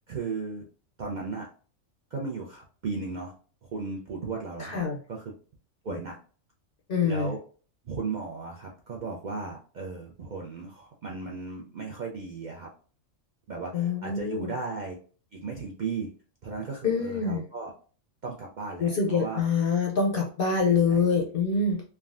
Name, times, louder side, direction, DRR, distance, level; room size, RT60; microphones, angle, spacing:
voice 1, 0.1-0.6 1.0-1.5 2.1-3.3 3.6-4.8 5.1-5.3 5.8-6.2 7.0-7.4 7.8-12.7 13.5-15.0 15.3-16.1 16.4-17.7 18.2-19.4 20.7-21.0, right 4 dB, 70° right, -1 dB, 0.4 m, -35 dB
voice 2, 4.6-5.0 6.9-7.3 13.7-14.5 16.8-17.4 18.8-21.8, left 5 dB, 60° left, 0 dB, 0.6 m, -25 dB
3.4 x 2.1 x 2.4 m, 0.40 s
omnidirectional pair, 1.4 m